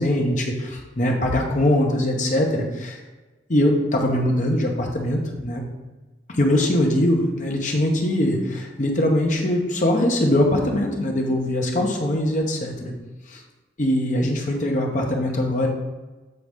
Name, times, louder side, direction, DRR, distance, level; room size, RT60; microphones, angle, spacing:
voice 1, 0.0-3.0 3.5-5.6 6.3-12.9 13.8-15.7, left 1 dB, 40° left, 1 dB, 0.9 m, -22 dB
7.9 x 3.9 x 3.6 m, 1.2 s
head